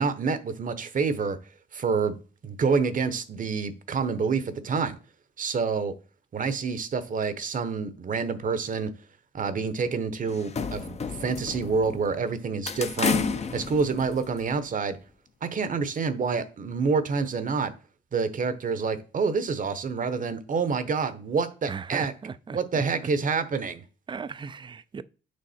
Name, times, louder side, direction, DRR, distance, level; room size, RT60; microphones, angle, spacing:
voice 1, 0.0-1.4 1.7-2.2 2.4-4.9 5.4-5.9 6.3-8.9 9.3-13.2 13.5-15.0 15.4-17.7 18.1-22.1 22.5-23.8, right 5 dB, 40° right, 0.9 m, -27 dB
sound 1, 10.3-12.2 12.7-14.5, left 5 dB, 35° left, 0.6 m, -31 dB
voice 2, 21.7-22.8 24.1-25.0, right 5 dB, 25° right, 0.4 m, -37 dB
6.5 x 3.7 x 4.2 m
cardioid pair, 90°, 20 cm